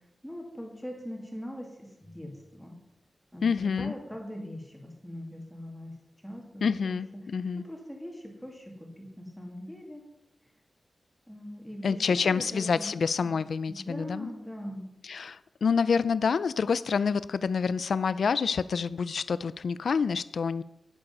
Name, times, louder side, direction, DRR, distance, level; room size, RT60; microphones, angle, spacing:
voice 1, 0.2-2.7 3.3-5.9 6.2-7.2 7.5-10.0 11.3-12.9 13.7-14.9, equal, 5° left, 0 dB, 2.2 m, -41 dB
voice 2, 3.4-3.9 6.6-7.6 11.8-14.3 15.0-20.6, left 5 dB, 75° left, 16 dB, 0.4 m, -27 dB
11.5 x 9.9 x 5.4 m, 0.86 s
wide cardioid pair, 150°, 0 cm